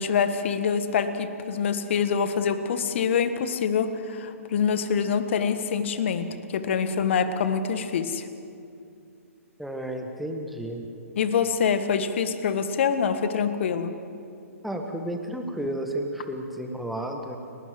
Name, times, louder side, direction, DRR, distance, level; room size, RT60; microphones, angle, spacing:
voice 1, 0.0-8.3 11.1-13.9, left 6 dB, 50° left, 10 dB, 1.6 m, -25 dB
voice 2, 9.6-10.9 14.6-17.4, right 1 dB, ahead, 3 dB, 1.8 m, -32 dB
29.5 x 12.5 x 7.8 m, 2.6 s
figure-of-eight pair, 130°, 8 cm